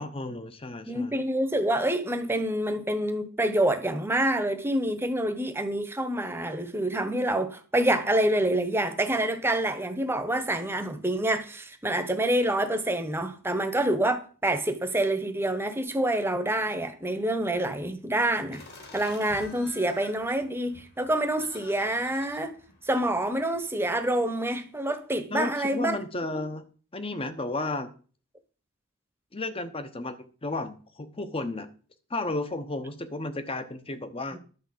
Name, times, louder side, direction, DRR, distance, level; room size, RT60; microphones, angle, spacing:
voice 1, 0.0-1.1 25.3-26.7 26.9-27.9 29.3-31.7 32.1-34.4, left 2 dB, 25° left, 1.0 m, -33 dB
voice 2, 0.9-18.6 18.9-22.5 22.9-26.0 34.3-34.4, right 1 dB, 10° right, 1.0 m, -27 dB
sound 1, 18.5-23.7, left 2 dB, 50° left, 2.8 m, -49 dB
11.0 x 4.6 x 7.8 m
head